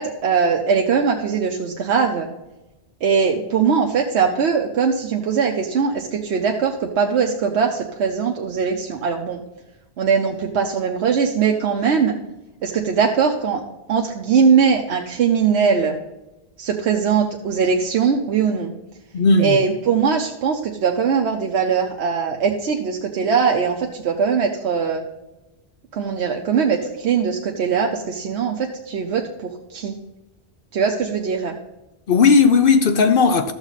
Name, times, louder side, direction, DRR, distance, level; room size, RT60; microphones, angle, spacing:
voice 1, 0.0-2.3 3.0-9.4 10.0-12.1 12.6-13.6 13.9-15.9 16.6-18.7 19.4-25.0 25.9-30.0 30.7-31.5, right 6 dB, 85° right, 1.0 m, -20 dB
voice 2, 19.1-19.6 32.1-33.5, left 4 dB, 60° left, 0.8 m, -15 dB
13.0 x 7.1 x 4.0 m
omnidirectional pair, 1.1 m